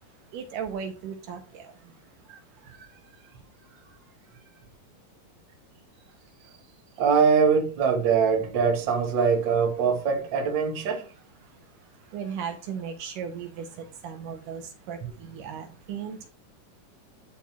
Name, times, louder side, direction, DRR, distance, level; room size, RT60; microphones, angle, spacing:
voice 1, 0.3-1.7 12.1-16.3, right 7 dB, 75° right, 2.4 m, -36 dB
voice 2, 7.0-11.1, right 6 dB, 45° right, 1.7 m, -23 dB
10.5 x 4.2 x 4.3 m
omnidirectional pair, 4.1 m